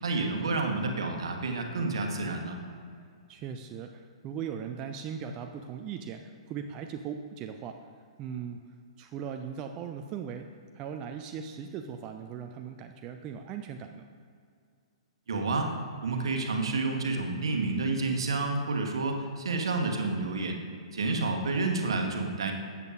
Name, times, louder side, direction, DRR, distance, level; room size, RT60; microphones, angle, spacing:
voice 1, 0.0-2.6 15.3-15.7 16.0-20.6 20.9-22.5, right 3 dB, 60° right, 3 dB, 1.1 m, -29 dB
voice 2, 3.3-7.8 8.2-8.6 9.0-10.5 10.7-14.1, right 7 dB, 25° right, 5 dB, 0.4 m, -39 dB
13.0 x 8.1 x 2.5 m, 2.3 s
figure-of-eight pair, 110°, 3 cm